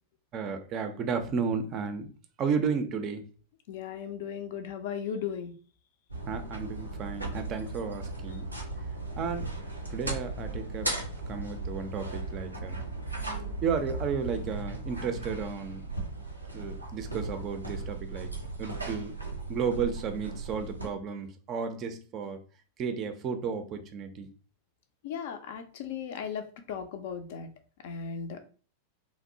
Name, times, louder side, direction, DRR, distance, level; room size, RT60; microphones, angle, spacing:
voice 1, 0.3-2.1 2.4-3.3 6.3-8.5 9.2-9.5 9.9-10.9 11.3-12.8 13.6-15.8 16.5-18.3 18.6-19.2 19.5-22.4 22.8-24.3, right 6 dB, 35° right, 0.4 m, -33 dB
voice 2, 3.7-5.5 25.0-27.5 27.8-28.5, left 7 dB, 55° left, 0.3 m, -36 dB
sound 1, 6.1-20.9, right 2 dB, 85° right, 0.5 m, -37 dB
2.7 x 2.0 x 2.5 m
figure-of-eight pair, 90°, 0 cm